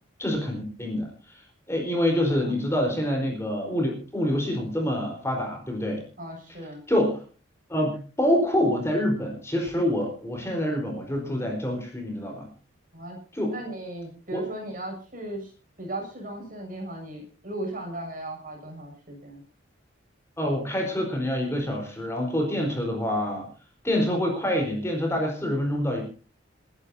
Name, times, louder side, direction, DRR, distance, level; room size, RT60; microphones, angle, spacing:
voice 1, 0.2-6.0 6.9-7.2 7.7-12.5 13.3-13.5 14.3-14.4 20.4-23.5 23.8-26.0, left 1 dB, 15° left, 1 dB, 4.3 m, -26 dB
voice 2, 1.9-2.6 6.2-6.8 12.9-15.5 15.8-19.4, right 1 dB, 40° right, 2 dB, 6.7 m, -37 dB
30.0 x 11.5 x 2.8 m, 0.36 s
head